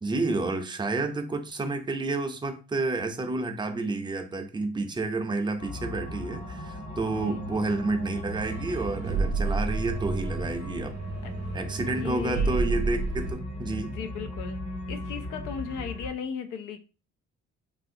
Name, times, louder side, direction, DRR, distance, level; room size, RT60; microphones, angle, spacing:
voice 1, 0.0-11.0 11.5-14.0, right 3 dB, 15° right, 0.4 m, -30 dB
sound 1, 5.6-16.1, left 1 dB, 50° left, 1.3 m, -38 dB
sound 2, 8.3-13.3, right 3 dB, 60° right, 0.7 m, -30 dB
voice 2, 11.9-12.6 13.9-14.6 14.9-16.8, left 7 dB, 85° left, 0.5 m, -36 dB
3.0 x 2.5 x 2.6 m
cardioid pair, 90°, 30 cm